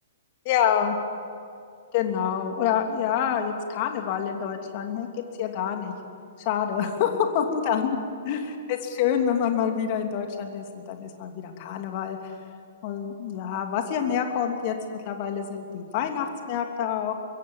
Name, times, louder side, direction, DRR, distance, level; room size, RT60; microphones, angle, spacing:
voice 1, 0.5-0.9 1.9-5.9 6.4-8.0 8.2-12.3 12.8-17.1, left 8 dB, 40° left, 5 dB, 2.9 m, -27 dB
23.0 x 23.0 x 7.6 m, 2.4 s
figure-of-eight pair, 115°, 0 cm